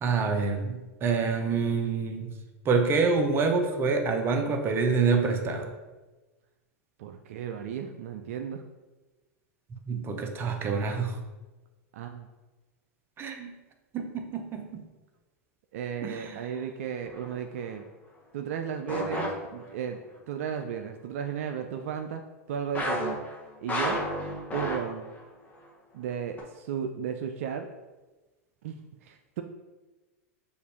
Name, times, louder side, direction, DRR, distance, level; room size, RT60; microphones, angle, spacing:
voice 1, 0.0-2.3 2.6-5.7 9.7-11.2 13.2-13.5 13.9-14.8 16.0-16.3, right 4 dB, 30° right, 4 dB, 0.6 m, -27 dB
voice 2, 7.0-8.6 11.9-12.3 15.7-17.8 18.3-20.0 20.3-22.2 22.5-23.2 23.6-24.0 24.5-25.1 25.9-27.7 28.6-29.4, right 8 dB, 65° right, 5 dB, 0.3 m, -34 dB
sound 1, 17.0-17.4 18.9-19.9 22.7-25.2 25.5-25.7 26.4-26.5, left 1 dB, 20° left, 0.9 m, -32 dB
6.7 x 2.5 x 2.8 m, 1.2 s
hypercardioid pair, 105°, 8 cm